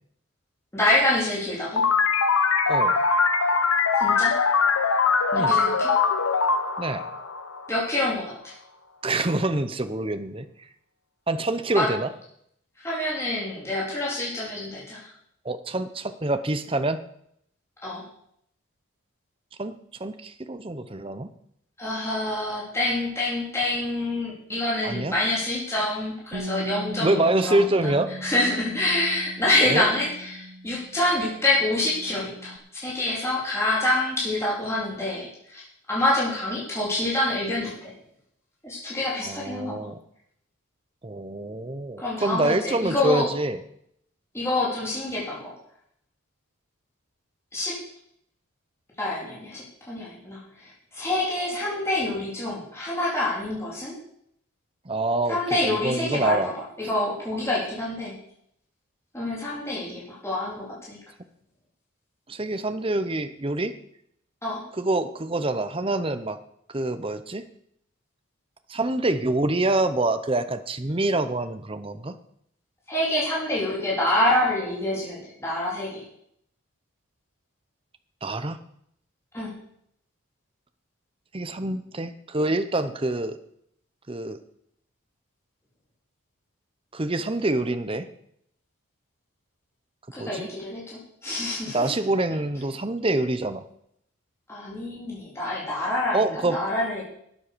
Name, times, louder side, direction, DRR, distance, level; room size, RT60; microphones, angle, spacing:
voice 1, 0.7-1.8 4.0-4.3 5.3-5.9 7.7-8.5 11.7-11.9 12.8-15.1 17.8-18.0 21.8-27.9 28.2-32.5 32.8-35.6 35.9-37.9 38.6-39.8 42.0-43.3 44.3-45.5 47.5-47.7 49.0-54.0 55.3-56.5 56.8-58.1 59.1-61.0 64.4-64.6 72.9-76.0 79.3-79.5 90.1-91.9 94.5-97.0, left 1 dB, 10° left, -6 dB, 3.6 m, -26 dB
sound 1, 1.8-8.0, left 5 dB, 75° left, 1.0 m, -22 dB
voice 2, 9.0-10.4 11.3-12.1 15.4-17.0 19.6-19.7 20.0-21.3 24.8-25.1 27.0-28.1 29.7-29.9 39.2-40.0 41.0-43.6 54.9-55.4 55.6-56.5 62.3-63.7 64.8-66.4 66.7-67.4 68.7-72.2 78.2-78.6 81.3-83.4 84.1-84.4 86.9-88.1 90.2-90.5 91.7-93.6 96.1-96.6, right 2 dB, 25° right, 10 dB, 0.7 m, -26 dB
Bass guitar, 26.3-32.6, equal, 75° right, 1.4 m, -39 dB
12.5 x 8.7 x 6.8 m, 0.72 s
head